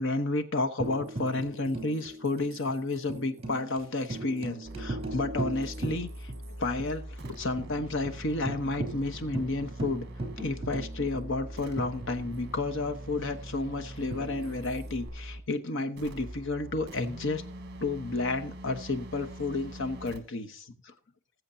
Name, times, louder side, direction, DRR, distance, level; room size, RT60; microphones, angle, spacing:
voice 1, 0.0-6.3 6.6-10.0 10.4-17.4 17.8-20.9, left 2 dB, 60° left, 1.1 m, -31 dB
Tambourine, 0.8-6.5 6.8-6.9 7.2-7.7 8.0-8.2 8.5-12.6 14.1-15.1, right 2 dB, 30° right, 3.1 m, -39 dB
sound 1, 4.6-15.5 16.0-20.2, right 1 dB, 55° right, 1.2 m, -43 dB
20.0 x 7.6 x 2.7 m
head